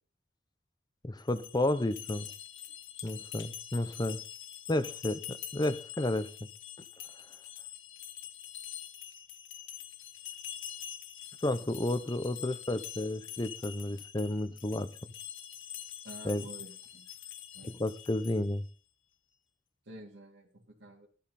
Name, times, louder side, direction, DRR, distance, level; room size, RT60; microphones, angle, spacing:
voice 1, 1.0-2.3 3.0-4.2 4.7-6.3 11.4-14.9 16.2-16.4 17.8-18.6, left 1 dB, 20° left, 0.8 m, -31 dB
sound 1, 1.2-18.6, left 11 dB, 85° left, 1.4 m, -45 dB
voice 2, 16.0-17.1 17.5-17.8 19.8-21.1, right 1 dB, 65° right, 3.4 m, -50 dB
13.0 x 12.0 x 4.3 m
head